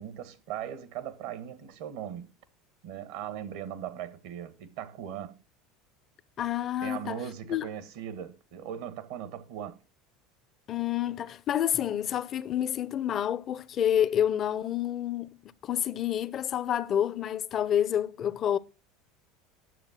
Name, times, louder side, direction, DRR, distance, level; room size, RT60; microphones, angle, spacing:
voice 1, 0.0-2.4 2.8-5.4 6.8-9.8, right 10 dB, 70° right, 1.3 m, -39 dB
voice 2, 6.4-7.2 7.5-7.7 10.7-18.6, left 10 dB, 45° left, 0.7 m, -28 dB
11.0 x 6.9 x 5.9 m
hypercardioid pair, 85°, 0 cm